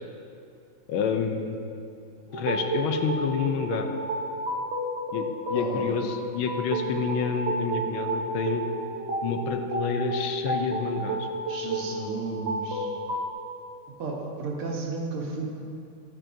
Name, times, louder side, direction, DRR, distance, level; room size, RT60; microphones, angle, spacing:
voice 1, 0.9-1.6 2.3-3.9 5.1-8.6 9.2-11.3, left 6 dB, 75° left, 5 dB, 1.4 m, -28 dB
sound 1, 2.3-13.3, right 1 dB, 50° right, 0.8 m, -31 dB
voice 2, 5.5-5.9 6.8-6.9 11.5-12.9 14.0-15.5, right 3 dB, 75° right, -2 dB, 2.1 m, -33 dB
11.5 x 8.9 x 2.6 m, 2.5 s
omnidirectional pair, 2.4 m